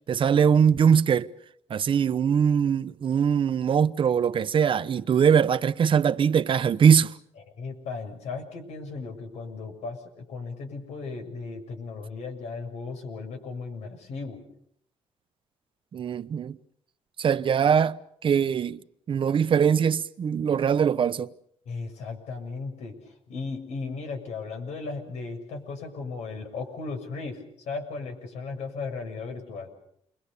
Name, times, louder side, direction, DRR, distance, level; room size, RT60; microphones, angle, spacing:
voice 1, 0.1-1.3 1.7-7.2 15.9-16.6 17.2-18.8 19.1-21.3, right 7 dB, 50° right, 1.0 m, -22 dB
voice 2, 7.5-14.4 21.7-29.7, left 4 dB, 85° left, 7.3 m, -36 dB
29.5 x 22.5 x 6.9 m
cardioid pair, 105°, 11 cm